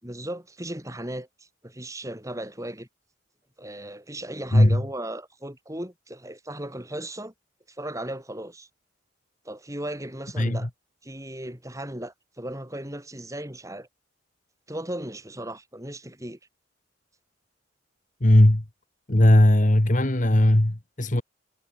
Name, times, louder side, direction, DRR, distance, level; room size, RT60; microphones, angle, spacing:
voice 1, 0.0-2.9 3.6-7.3 7.7-8.7 9.4-10.7 11.0-13.9 14.7-16.4, right 1 dB, 15° right, 6.6 m, -36 dB
voice 2, 10.4-10.7 18.2-18.6 19.1-21.2, left 1 dB, 40° left, 1.6 m, -18 dB
head